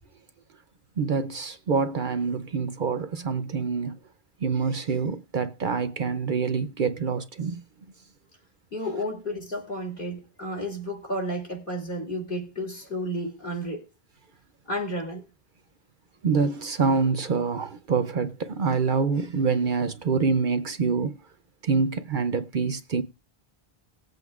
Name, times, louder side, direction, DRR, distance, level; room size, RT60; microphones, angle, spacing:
voice 1, 1.0-4.0 4.4-7.6 16.2-21.2 21.6-23.0, right 5 dB, 55° right, 0.8 m, -26 dB
voice 2, 8.7-13.9 14.7-15.3, equal, 55° left, 3.2 m, -32 dB
19.0 x 7.9 x 2.4 m
omnidirectional pair, 1.1 m